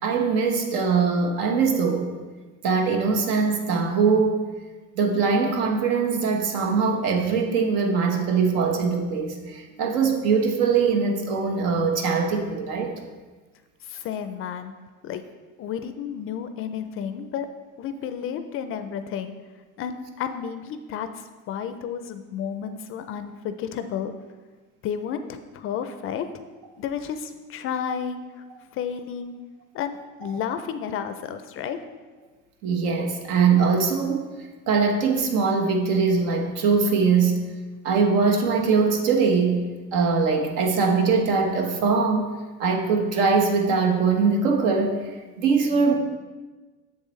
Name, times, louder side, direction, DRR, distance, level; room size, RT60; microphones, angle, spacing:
voice 1, 0.0-2.1 2.6-4.4 5.0-12.9 32.6-34.3 34.7-37.4 37.8-39.6 39.9-42.3 42.6-45.0 45.4-45.9, right 5 dB, 75° right, 3 dB, 1.2 m, -22 dB
voice 2, 13.8-14.7 15.0-15.2 15.6-17.5 17.8-19.3 19.8-24.1 24.8-26.3 26.8-28.4 28.7-29.3 29.7-31.8, left 8 dB, 40° left, 9 dB, 0.4 m, -32 dB
7.4 x 7.3 x 3.1 m, 1.3 s
cardioid pair, 140°, 33 cm